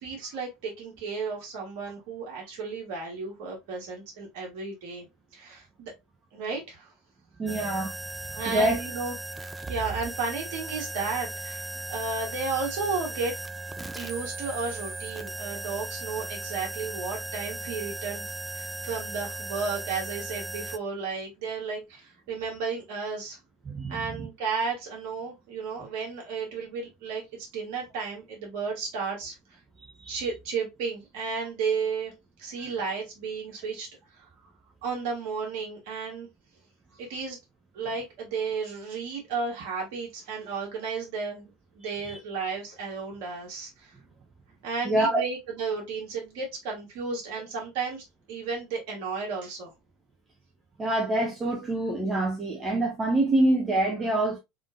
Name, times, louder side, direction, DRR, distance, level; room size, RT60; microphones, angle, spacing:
voice 1, 0.0-5.0 5.3-5.9 6.3-6.9 8.3-13.3 13.9-23.4 23.9-29.6 30.1-32.1 32.4-33.9 34.1-34.3 34.8-36.3 37.0-37.4 37.7-41.5 41.7-43.9 44.6-49.7, right 4 dB, 60° right, 2.0 m, -33 dB
voice 2, 7.4-7.9 8.3-8.8 9.6-9.7 23.6-24.3 29.8-30.3 42.0-42.2 44.8-45.2 50.8-54.4, right 1 dB, 25° right, 0.9 m, -26 dB
sound 1, 7.5-20.8, right 2 dB, 5° right, 0.4 m, -37 dB
3.6 x 3.5 x 2.4 m
figure-of-eight pair, 75°, 0 cm